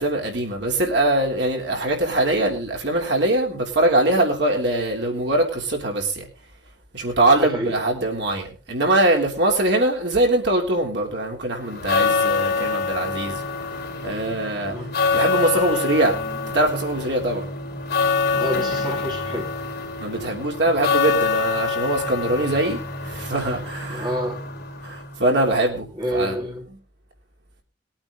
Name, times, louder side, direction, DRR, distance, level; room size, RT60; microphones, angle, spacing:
voice 1, 0.0-6.3 6.9-13.4 14.0-14.8 15.1-16.2 16.5-17.4 20.0-24.1 24.8-26.4, right 1 dB, 70° right, 3.3 m, -22 dB
voice 2, 7.4-7.7 14.7-14.9 18.4-19.5 23.9-24.4 25.9-26.6, equal, 25° right, 3.0 m, -28 dB
sound 1, 11.6-25.2, left 4 dB, 60° left, 3.4 m, -26 dB
21.0 x 8.9 x 3.9 m
head